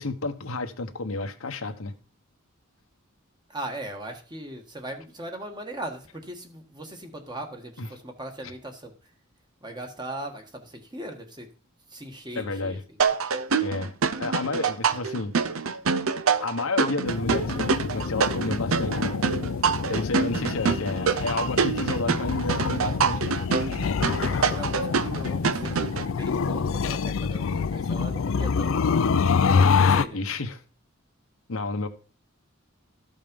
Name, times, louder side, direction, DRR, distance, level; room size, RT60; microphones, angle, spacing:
voice 1, 0.0-1.9 7.8-7.9 12.3-12.8 13.6-13.9 14.2-15.3 16.4-19.2 19.9-23.4 30.1-30.6 31.5-31.9, left 3 dB, 90° left, 1.2 m, -31 dB
voice 2, 3.5-8.9 9.6-11.5 11.9-13.0 24.3-28.7 29.3-30.2, right 1 dB, 20° right, 1.4 m, -39 dB
sound 1, 13.0-26.1, right 5 dB, 80° right, 0.6 m, -26 dB
sound 2, 17.1-30.1, left 5 dB, 75° left, 0.5 m, -26 dB
13.0 x 5.4 x 5.3 m
head